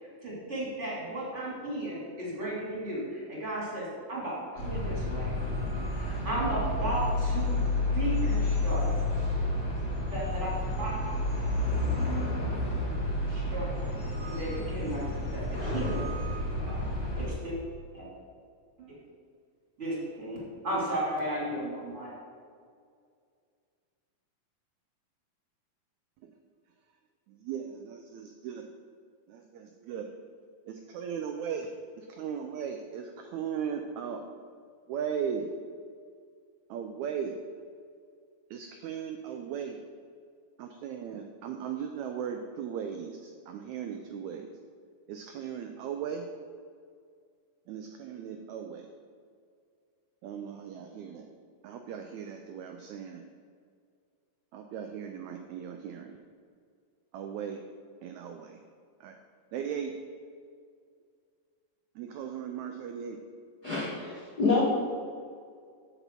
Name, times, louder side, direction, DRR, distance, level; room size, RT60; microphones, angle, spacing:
voice 1, 0.2-5.3 5.9-8.9 10.1-10.5 10.8-11.1 11.7-12.2 13.2-13.7 14.3-15.0 15.3-16.2 16.6-16.9 17.2-17.6 17.9-18.1 18.8-18.9 19.8-20.4 20.6-22.1, right 1 dB, 25° right, -6 dB, 2.3 m, -35 dB
sound 1, 4.6-17.3, left 2 dB, 30° left, 2.4 m, -30 dB
voice 2, 27.3-28.7 29.3-30.1 30.7-31.7 32.0-34.2 34.9-35.5 36.7-37.3 38.5-39.8 40.6-44.5 45.1-46.3 47.7-48.9 50.2-51.3 51.6-53.2 54.5-56.2 57.1-57.6 58.0-58.6 59.0-59.1 59.5-59.9 61.9-63.2, right 7 dB, 85° right, 5 dB, 1.6 m, -37 dB
voice 3, 63.6-64.6, left 3 dB, 85° left, -6 dB, 0.8 m, -27 dB
8.1 x 6.8 x 4.4 m, 2.2 s
omnidirectional pair, 3.9 m